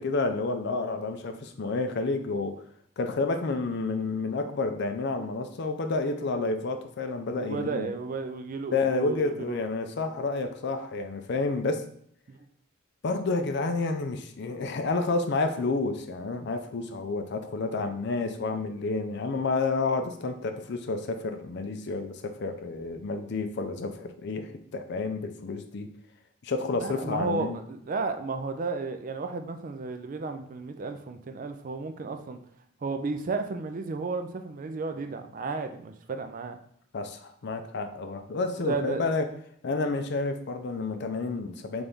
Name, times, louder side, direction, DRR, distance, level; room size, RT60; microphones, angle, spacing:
voice 1, 0.0-2.6 3.0-7.9 8.7-11.9 13.0-25.9 26.4-27.6 36.9-39.3 39.6-41.8, left 3 dB, 60° left, 7 dB, 0.5 m, -30 dB
voice 2, 7.4-9.7 12.3-12.5 26.8-32.4 32.8-36.6 38.6-39.1, right 4 dB, 45° right, 7 dB, 0.4 m, -33 dB
3.9 x 3.4 x 3.5 m, 0.65 s
head